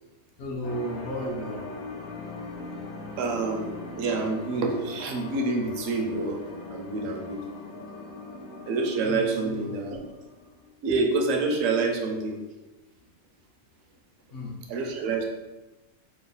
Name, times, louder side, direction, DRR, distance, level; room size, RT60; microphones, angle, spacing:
voice 1, 0.4-1.7 9.0-9.7 14.3-14.6, equal, 60° left, 0 dB, 0.6 m, -34 dB
sound 1, 0.6-10.7, left 3 dB, 85° left, 1.0 m, -40 dB
voice 2, 3.2-6.4 6.7-7.4 8.7-10.0 10.8-12.4 14.7-15.2, right 3 dB, 70° right, 2 dB, 0.9 m, -27 dB
2.9 x 2.1 x 3.8 m, 1.1 s
omnidirectional pair, 1.5 m